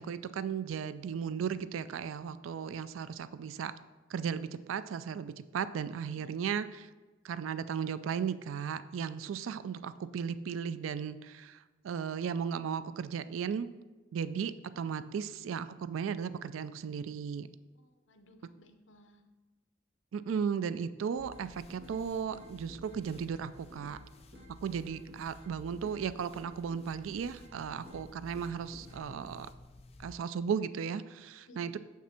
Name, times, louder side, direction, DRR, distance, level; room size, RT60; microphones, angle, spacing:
voice 1, 0.0-3.7 4.1-6.9 7.2-13.7 14.1-17.5 20.1-24.0 24.5-29.5 30.0-31.8, right 7 dB, 85° right, 14 dB, 0.3 m, -36 dB
voice 2, 17.7-19.3 31.5-31.8, left 1 dB, 75° left, 7 dB, 0.8 m, -58 dB
sound 1, 21.2-30.2, left 1 dB, 35° left, 0.6 m, -54 dB
sound 2, 21.3-22.0 22.3-24.0 24.3-26.0 26.3-28.0 28.3-29.2, left 1 dB, 60° right, 2.5 m, -54 dB
7.0 x 5.9 x 4.3 m, 1.2 s
head